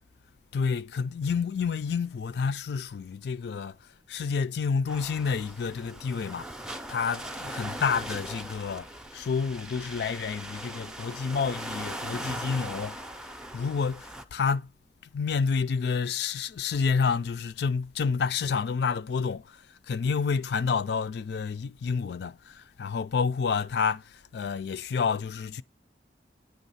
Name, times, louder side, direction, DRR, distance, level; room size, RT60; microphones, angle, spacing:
voice 1, 0.5-3.8 4.1-6.5 6.9-8.9 9.1-13.0 13.5-14.7 15.1-25.6, left 5 dB, 65° left, 0.4 m, -29 dB
sound 1, 4.9-14.2, right 1 dB, 5° right, 0.5 m, -40 dB
9.2 x 3.4 x 5.5 m
head